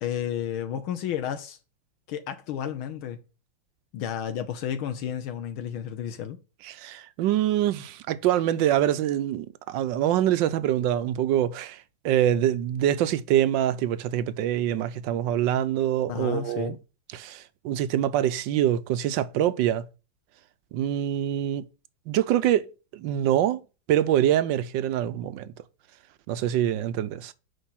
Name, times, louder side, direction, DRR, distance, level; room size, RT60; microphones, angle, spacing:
voice 1, 0.0-1.6 2.1-3.2 3.9-6.4 16.1-16.7, left 9 dB, 85° left, 1.7 m, -32 dB
voice 2, 6.6-16.8 17.1-19.9 20.7-21.7 22.1-23.6 23.9-25.5 26.3-27.3, right 11 dB, 75° right, 1.2 m, -25 dB
6.8 x 5.1 x 5.7 m
omnidirectional pair, 2.2 m